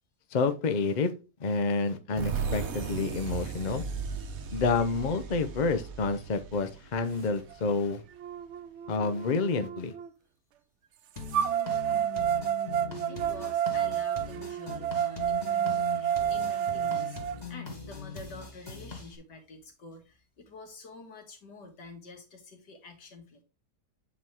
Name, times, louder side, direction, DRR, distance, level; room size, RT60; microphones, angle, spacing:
voice 1, 0.3-1.1 1.4-3.8 4.5-8.0 8.9-9.9, left 4 dB, 50° left, 0.5 m, -28 dB
sound 1, 2.2-7.7, right 5 dB, 60° right, 1.4 m, -36 dB
sound 2, 7.5-7.6 8.2-10.1 11.3-17.3, right 10 dB, 80° right, 0.6 m, -30 dB
sound 3, 11.2-19.2, left 4 dB, 25° left, 1.6 m, -41 dB
voice 2, 13.0-23.4, left 3 dB, 75° left, 2.3 m, -48 dB
8.4 x 4.7 x 3.6 m
omnidirectional pair, 1.8 m